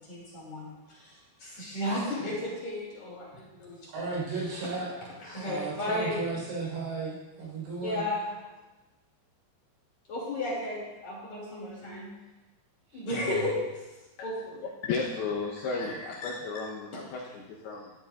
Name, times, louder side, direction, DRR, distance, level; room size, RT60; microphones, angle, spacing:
voice 1, 0.0-4.1 4.5-4.8 5.2-6.2 7.8-8.2 10.1-12.1 12.9-13.6 14.2-14.7 15.8-16.0, left 1 dB, 45° left, -5 dB, 3.0 m, -34 dB
voice 2, 3.9-5.0 5.4-8.0 12.9-13.3, right 3 dB, 80° right, -5 dB, 6.2 m, -35 dB
voice 3, 14.9-17.9, left 4 dB, 75° left, -2 dB, 2.4 m, -33 dB
12.5 x 12.5 x 2.4 m, 1.1 s
omnidirectional pair, 5.4 m